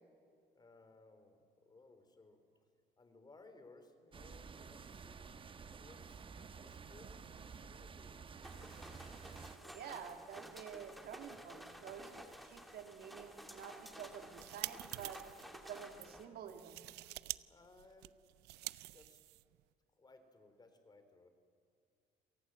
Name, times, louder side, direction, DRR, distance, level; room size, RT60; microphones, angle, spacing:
voice 1, 0.6-2.7 3.0-9.1 17.5-18.5 18.8-19.2 19.9-21.3, left 3 dB, 25° left, 9 dB, 3.1 m, -62 dB
sound 1, 4.1-9.6, right 5 dB, 30° right, 1.1 m, -52 dB
sound 2, 8.4-16.2, equal, ahead, 2.4 m, -53 dB
voice 2, 9.6-15.2 15.5-16.8, right 8 dB, 65° right, 6 dB, 2.4 m, -50 dB
sound 3, 14.1-15.5 15.9-16.1 16.5-17.4 17.6-19.6, right 19 dB, 85° right, 0.5 m, -46 dB
28.0 x 18.5 x 7.7 m, 2.4 s
cardioid pair, 110°, 17 cm